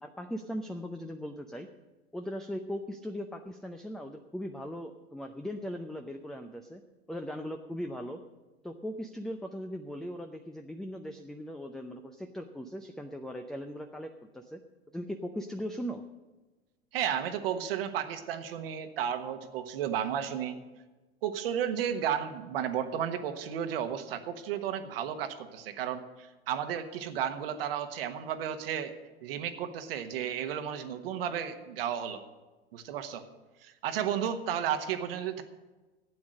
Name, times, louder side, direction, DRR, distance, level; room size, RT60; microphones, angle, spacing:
voice 1, 0.0-1.7 2.1-6.8 7.1-8.2 8.6-14.6 14.9-16.0, equal, ahead, 6 dB, 0.5 m, -39 dB
voice 2, 16.9-20.6 21.2-28.9 29.2-32.2 32.7-33.2 33.6-35.4, right 9 dB, 65° right, 8 dB, 1.3 m, -33 dB
12.5 x 8.7 x 6.4 m, 1.2 s
hypercardioid pair, 85°, 31 cm